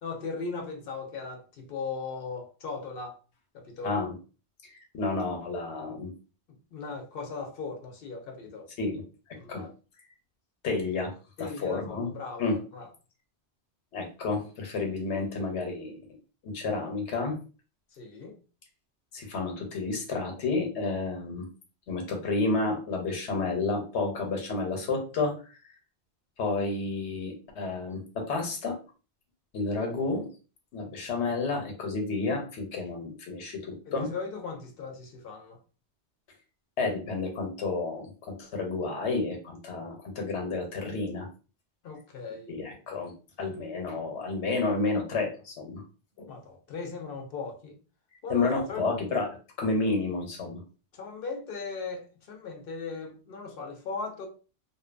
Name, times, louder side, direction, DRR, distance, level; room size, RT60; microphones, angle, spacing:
voice 1, 0.0-3.2 3.5-3.9 6.7-8.7 9.4-9.7 11.4-12.5 12.7-12.9 17.9-18.4 33.9-35.6 41.8-42.6 46.3-47.8 48.2-48.9 50.9-54.3, left 4 dB, 60° left, 0.7 m, -38 dB
voice 2, 3.8-4.1 4.6-6.1 8.8-9.0 9.5-9.6 10.6-11.1 11.4-12.1 12.4-12.6 13.9-16.0 16.4-17.4 19.1-21.5 21.9-25.4 26.4-28.8 29.5-30.3 30.7-34.1 36.8-41.3 42.5-43.1 43.4-45.8 46.2-46.3 48.3-50.6, left 3 dB, 85° left, 1.1 m, -30 dB
2.7 x 2.2 x 2.4 m
omnidirectional pair, 1.1 m